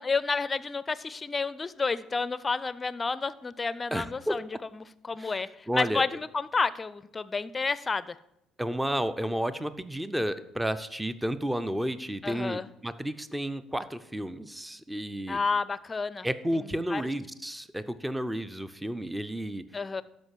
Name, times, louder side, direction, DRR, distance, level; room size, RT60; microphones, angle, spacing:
voice 1, 0.0-4.5 4.7-8.2 12.2-12.7 15.3-16.3 16.9-17.0 19.7-20.0, left 4 dB, 30° left, 17 dB, 0.5 m, -30 dB
voice 2, 3.9-4.4 5.2-5.3 5.7-6.0 8.6-15.4 16.2-19.6, equal, 10° right, 13 dB, 0.6 m, -32 dB
12.5 x 5.3 x 4.6 m, 0.81 s
hypercardioid pair, 55°, 0 cm